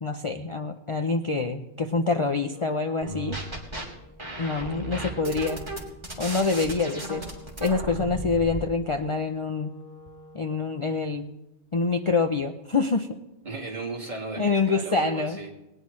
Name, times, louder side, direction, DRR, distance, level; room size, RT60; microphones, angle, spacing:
voice 1, 0.0-3.4 4.4-5.6 6.2-7.3 7.6-9.7 10.3-11.3 11.7-13.2 14.4-15.4, left 4 dB, 35° left, 5 dB, 0.6 m, -26 dB
Wind instrument woodwind instrument, 2.4-10.6, equal, 65° left, 7.4 m, -50 dB
sound 1, 3.0-3.8 4.2-8.6, right 1 dB, 25° right, 2.7 m, -34 dB
voice 2, 13.4-15.5, right 3 dB, 40° right, -1 dB, 2.3 m, -35 dB
19.0 x 19.0 x 3.2 m, 0.97 s
omnidirectional pair, 1.2 m